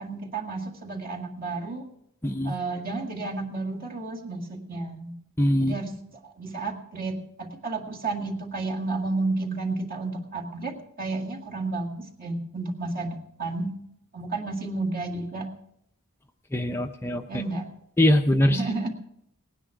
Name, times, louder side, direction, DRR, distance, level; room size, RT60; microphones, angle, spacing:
voice 1, 0.0-1.9 2.4-5.2 5.6-5.9 6.2-13.8 14.1-15.5 17.3-17.7 18.5-18.9, right 3 dB, 40° right, 0 dB, 2.0 m, -32 dB
voice 2, 2.2-2.5 5.4-5.7 16.5-17.2 18.0-18.6, left 1 dB, 10° left, 5 dB, 0.5 m, -22 dB
19.0 x 10.0 x 4.7 m, 0.75 s
head